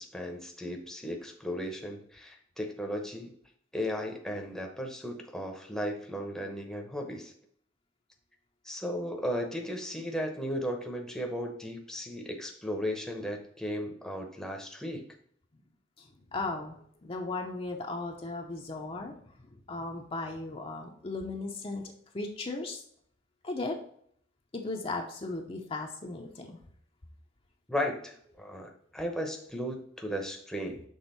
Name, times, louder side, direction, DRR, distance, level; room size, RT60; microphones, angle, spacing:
voice 1, 0.0-3.3 3.7-7.3 8.6-15.1 27.7-30.8, equal, 5° left, 2 dB, 0.8 m, -35 dB
voice 2, 16.3-19.2 19.7-21.8 22.1-22.8 23.4-23.8 24.5-26.6, left 2 dB, 30° left, 1 dB, 0.7 m, -36 dB
6.3 x 3.6 x 5.5 m, 0.63 s
head